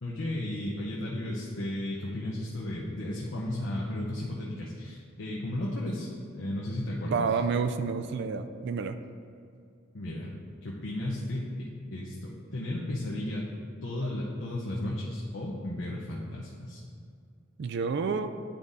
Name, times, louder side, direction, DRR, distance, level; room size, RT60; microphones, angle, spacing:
voice 1, 0.0-7.2 9.9-10.3 10.6-13.5 13.8-16.8, left 1 dB, 65° left, -4 dB, 0.8 m, -34 dB
voice 2, 7.0-9.0 17.6-18.3, right 5 dB, 60° right, 9 dB, 0.4 m, -29 dB
10.0 x 3.7 x 4.0 m, 2.3 s
head